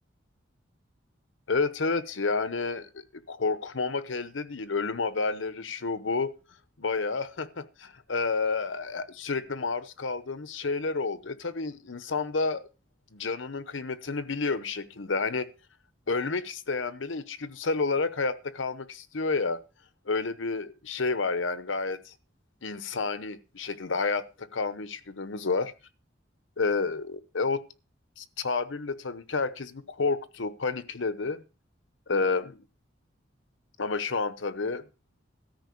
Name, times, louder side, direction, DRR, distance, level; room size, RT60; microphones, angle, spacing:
voice 1, 1.5-6.3 6.8-12.7 13.1-15.5 16.1-19.6 20.1-22.1 22.6-25.7 26.6-27.6 28.2-31.4 32.1-32.6 33.8-34.8, left 4 dB, 80° left, 0.9 m, -30 dB
13.5 x 5.1 x 8.4 m
head